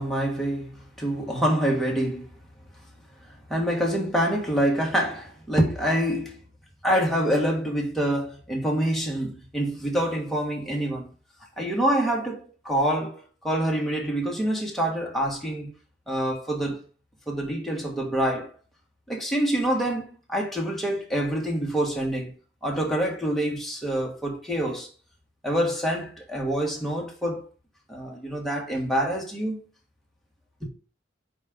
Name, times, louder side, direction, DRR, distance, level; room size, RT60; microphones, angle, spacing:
voice 1, 0.0-2.3 3.2-6.4 6.8-11.1 11.6-15.7 16.1-16.8 17.3-18.5 19.1-22.3 22.6-24.9 25.4-27.4 27.9-29.6 30.6-30.7, right 1 dB, ahead, 1.6 m, -26 dB
5.0 x 4.2 x 5.2 m
head